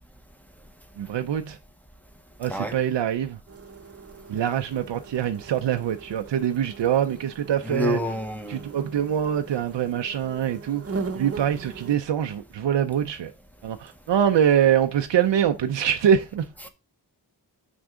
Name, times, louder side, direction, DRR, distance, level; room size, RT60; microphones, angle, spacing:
voice 1, 1.0-1.6 2.4-3.4 4.3-8.0 8.5-10.9 11.1-13.3 13.6-16.5, right 9 dB, 90° right, 0.6 m, -24 dB
sound 1, 3.5-12.0, right 4 dB, 35° right, 0.9 m, -39 dB
voice 2, 7.6-8.6, left 1 dB, 5° left, 1.0 m, -28 dB
6.2 x 5.9 x 3.7 m
wide cardioid pair, 110°, 42 cm